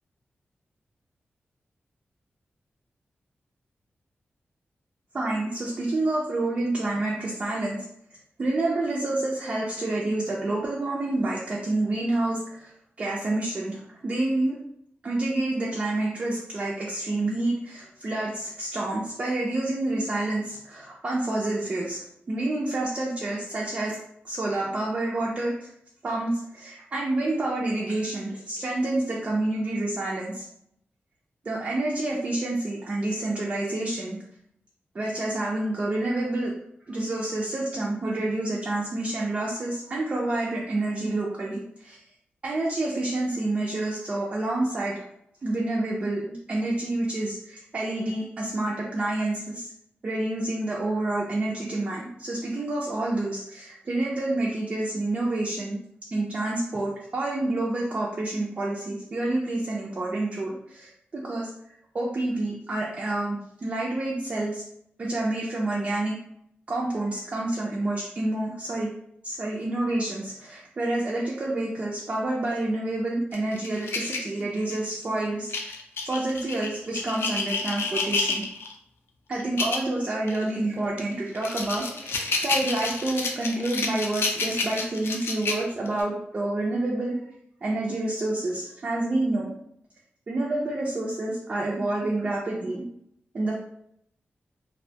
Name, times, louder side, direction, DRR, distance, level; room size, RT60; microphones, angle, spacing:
voice 1, 5.1-7.8 8.4-12.7 13.0-14.5 15.0-24.0 24.2-25.5 26.0-30.5 31.4-34.2 34.9-36.5 36.9-42.0 42.4-45.1 45.4-49.7 50.0-55.8 56.1-61.5 61.9-64.6 65.0-66.1 66.7-68.9 69.2-75.8 76.0-78.4 79.3-87.2 87.6-89.5 90.3-92.8 93.3-93.5, right 2 dB, 35° right, -4 dB, 0.4 m, -28 dB
sound 1, 73.3-74.9 75.5-78.7 79.4-79.9 80.3-80.4 81.0-86.0, left 3 dB, 70° left, 0.4 m, -29 dB
2.5 x 2.1 x 2.7 m, 0.73 s
wide cardioid pair, 175°, 4 cm